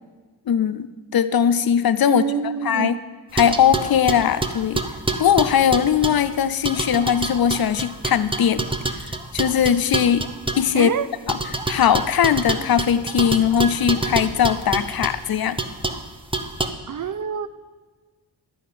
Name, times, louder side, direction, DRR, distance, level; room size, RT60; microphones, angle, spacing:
voice 1, 0.5-2.9 3.3-4.8 5.2-8.7 9.0-9.1 9.3-10.3 10.6-10.9 11.3-11.4 11.7-15.6, left 8 dB, 60° left, 13 dB, 0.6 m, -20 dB
voice 2, 2.1-3.0 10.7-11.1 16.9-17.5, right 7 dB, 50° right, 13 dB, 0.6 m, -26 dB
sound 1, 3.4-6.3 6.6-10.7 11.3-15.1 15.6-16.0 16.3-16.7, right 2 dB, 10° right, 0.8 m, -27 dB
11.0 x 5.5 x 8.4 m, 1.4 s
cardioid pair, 60°, 41 cm